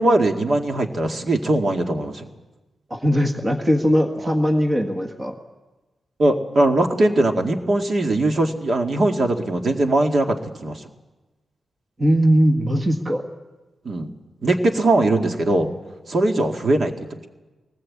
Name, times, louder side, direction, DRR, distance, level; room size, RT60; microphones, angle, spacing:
voice 1, 0.0-2.3 6.2-10.8 13.9-14.1 14.4-15.7 16.1-17.2, right 2 dB, 40° right, 4 dB, 2.1 m, -20 dB
voice 2, 2.9-5.3 12.0-13.2, equal, 20° right, 3 dB, 1.7 m, -19 dB
23.0 x 19.0 x 8.6 m, 1.1 s
wide cardioid pair, 160°, 0 cm